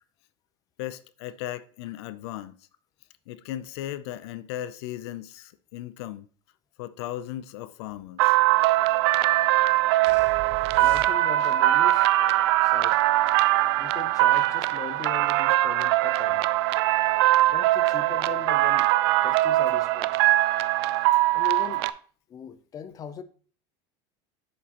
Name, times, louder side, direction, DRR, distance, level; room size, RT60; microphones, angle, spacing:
voice 1, 0.8-2.6 3.3-6.3 6.8-8.4 14.7-14.8 21.1-21.2, left 13 dB, 75° left, 0.4 m, -37 dB
sound 1, 8.2-21.9, right 16 dB, 75° right, 0.4 m, -22 dB
sound 2, 10.1-11.6, right 8 dB, 45° right, 0.8 m, -40 dB
voice 2, 10.7-12.1 12.6-13.0 13.8-16.5 17.5-18.9 19.2-20.1 21.3-21.8 22.3-23.2, left 8 dB, 25° left, 0.5 m, -39 dB
7.3 x 7.1 x 2.9 m
supercardioid pair, 135°, 14 cm